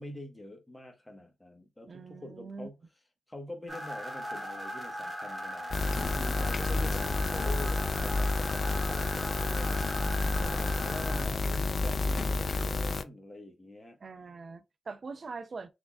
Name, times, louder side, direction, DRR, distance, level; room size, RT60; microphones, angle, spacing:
voice 1, 0.0-2.8 3.3-9.8 10.2-14.0, left 1 dB, 10° left, 1.2 m, -45 dB
voice 2, 1.9-2.7 6.5-6.9 10.1-10.6 14.0-15.7, right 4 dB, 50° right, 0.6 m, -44 dB
sound 1, 3.7-11.2, equal, 20° right, 1.7 m, -39 dB
sound 2, 5.7-13.0, left 3 dB, 50° left, 0.4 m, -30 dB
3.6 x 3.5 x 2.3 m
cardioid pair, 60°, 0 cm